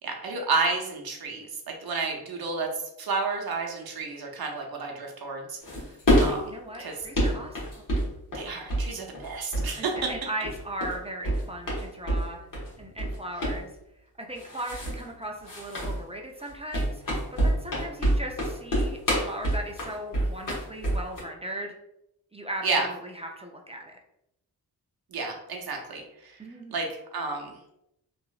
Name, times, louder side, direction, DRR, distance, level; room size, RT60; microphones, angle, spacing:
voice 1, 0.0-2.7 3.0-5.6 6.2-6.5 6.8-7.0 8.3-10.0 22.6-22.9 25.1-26.3 26.7-27.5, right 4 dB, 65° right, 1 dB, 0.7 m, -31 dB
sound 1, 5.6-6.4 6.9-8.9 9.1-9.7 10.0-11.0 11.2-12.2 12.5-13.2 13.4-13.6 14.4-15.0 15.4-16.0 16.4-21.2, equal, 55° left, 1.2 m, -26 dB
voice 2, 6.3-7.8 9.8-12.4 12.8-13.7 14.2-17.0 17.4-21.7 22.3-23.9 26.4-26.8, right 1 dB, 15° right, 1 dB, 0.4 m, -38 dB
2.9 x 2.5 x 2.4 m, 0.81 s
cardioid pair, 55°, 39 cm